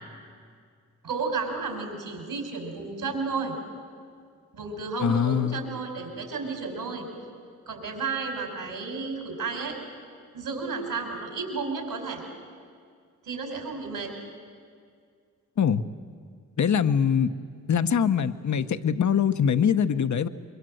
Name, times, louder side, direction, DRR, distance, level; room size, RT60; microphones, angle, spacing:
voice 1, 1.0-3.5 4.5-7.0 7.7-9.8 10.3-12.2 13.2-14.1, right 4 dB, 75° right, 3 dB, 5.3 m, -32 dB
voice 2, 5.0-5.6 15.6-15.8 16.6-17.3 17.7-20.3, left 7 dB, 50° left, 11 dB, 1.0 m, -23 dB
24.0 x 23.0 x 7.9 m, 2.1 s
supercardioid pair, 45°, 36 cm